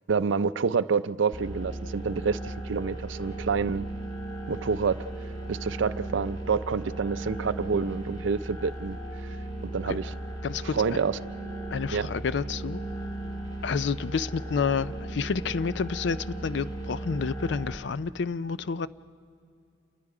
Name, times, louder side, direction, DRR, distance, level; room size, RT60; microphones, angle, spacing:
voice 1, 0.1-3.9 4.5-5.0 5.5-9.0 9.7-10.1 10.7-11.2 11.9-12.1, right 5 dB, 75° right, 14 dB, 0.5 m, -28 dB
sound 1, 1.3-17.8, right 1 dB, 25° left, 2.7 m, -36 dB
voice 2, 10.4-10.8 11.7-12.8 13.6-18.9, left 5 dB, 65° left, 16 dB, 0.4 m, -29 dB
29.0 x 20.5 x 4.9 m, 2.6 s
head